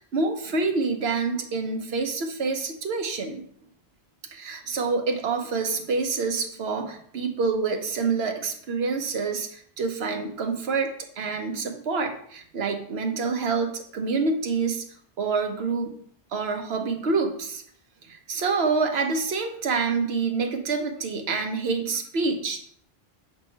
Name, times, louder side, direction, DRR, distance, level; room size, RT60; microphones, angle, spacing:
voice 1, 0.1-3.4 4.3-14.8 15.2-16.0 16.3-17.6 18.1-22.7, right 4 dB, 90° right, 5 dB, 1.1 m, -27 dB
6.1 x 3.6 x 4.4 m, 0.62 s
omnidirectional pair, 1.0 m